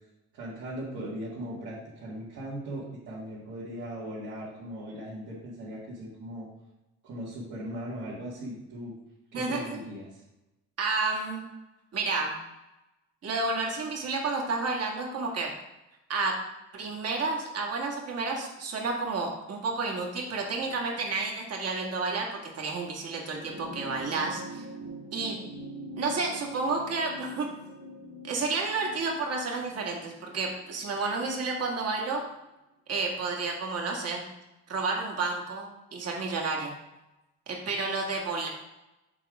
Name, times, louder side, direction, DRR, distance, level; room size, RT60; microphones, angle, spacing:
voice 1, 0.3-6.5 7.0-8.9 9.3-10.2, right 1 dB, 75° right, -9 dB, 2.1 m, -39 dB
voice 2, 9.3-9.8 10.8-11.4 11.9-12.3 13.2-15.5 16.1-16.4 16.7-24.6 25.1-25.4 25.9-27.5 28.2-32.2 32.9-34.2 34.7-36.7 37.5-38.5, right 3 dB, 55° right, 0 dB, 1.7 m, -31 dB
sound 1, 23.2-31.9 33.1-33.2, right 1 dB, 35° right, 1.5 m, -44 dB
7.4 x 3.9 x 4.8 m, 0.97 s
cardioid pair, 90°, 30 cm